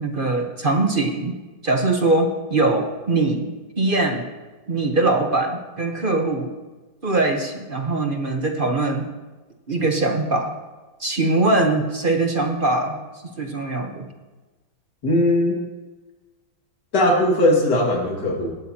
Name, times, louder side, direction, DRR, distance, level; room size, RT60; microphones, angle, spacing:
voice 1, 0.0-1.3 1.6-3.5 3.8-4.3 4.7-6.5 7.0-9.1 9.7-10.5 11.0-13.0 13.4-14.1, right 2 dB, 35° right, 2 dB, 0.9 m, -22 dB
voice 2, 15.0-15.5 16.9-18.5, left 1 dB, 55° left, 0 dB, 2.6 m, -19 dB
19.5 x 12.0 x 2.9 m, 1.2 s
omnidirectional pair, 2.2 m